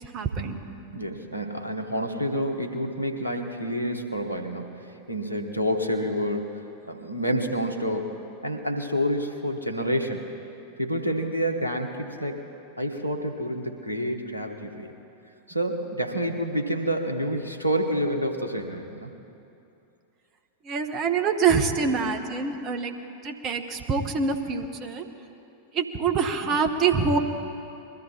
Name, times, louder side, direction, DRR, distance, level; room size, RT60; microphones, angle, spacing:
voice 1, 0.1-0.6 20.6-22.9 23.2-25.0 25.7-27.2, right 5 dB, 35° right, 6 dB, 1.1 m, -25 dB
voice 2, 0.9-6.6 6.9-8.2 8.4-10.3 10.8-12.4 12.8-14.9 15.5-19.1, equal, 90° right, 3 dB, 1.1 m, -28 dB
21.5 x 13.0 x 4.3 m, 2.7 s
figure-of-eight pair, 90°, 0 cm